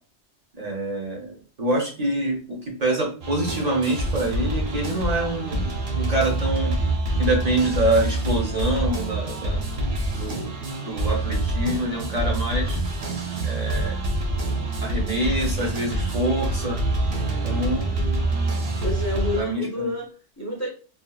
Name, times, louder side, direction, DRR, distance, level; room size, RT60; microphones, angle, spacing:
voice 1, 0.5-6.7 7.2-9.6 10.1-10.5 10.9-12.8 13.4-14.0 14.8-16.8 17.4-17.9 19.4-19.9, right 1 dB, 40° right, 0.7 m, -26 dB
sound 1, 3.2-19.4, right 2 dB, 60° right, 0.9 m, -26 dB
voice 2, 17.2-17.7 18.8-20.7, left 1 dB, 20° left, 0.6 m, -30 dB
2.7 x 2.4 x 2.2 m
omnidirectional pair, 1.2 m